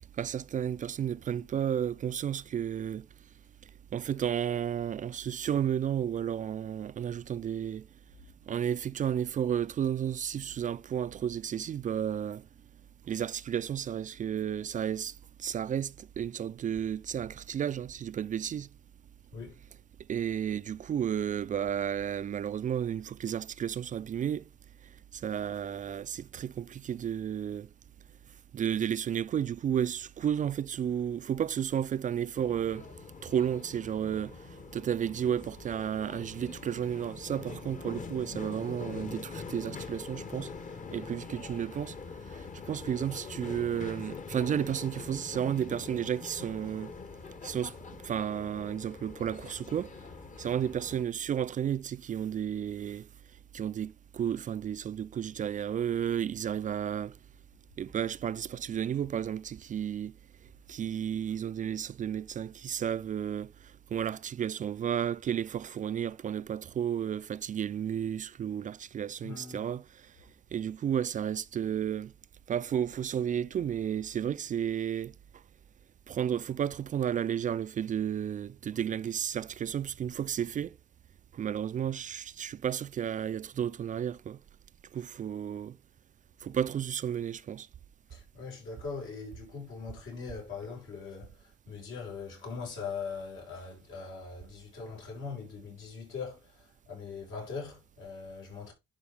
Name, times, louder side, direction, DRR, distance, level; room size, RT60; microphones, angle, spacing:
voice 1, 0.2-3.1 3.9-7.9 8.5-12.5 13.1-15.1 15.4-18.7 20.1-24.4 25.1-27.7 28.5-32.9 33.2-34.4 34.7-40.5 40.9-41.9 42.3-46.9 47.4-47.7 48.0-49.9 50.4-53.1 53.5-57.1 57.8-60.1 60.7-63.5 63.9-69.8 70.5-72.1 72.5-75.1 76.1-80.7 81.3-84.4 84.9-85.8 86.4-87.7, right 9 dB, 40° right, 0.4 m, -32 dB
sound 1, 32.4-51.0, left 5 dB, 40° left, 1.1 m, -44 dB
voice 2, 69.2-69.7 88.1-98.7, left 5 dB, 80° left, 5.4 m, -41 dB
11.0 x 4.6 x 3.4 m
cardioid pair, 90°, 20 cm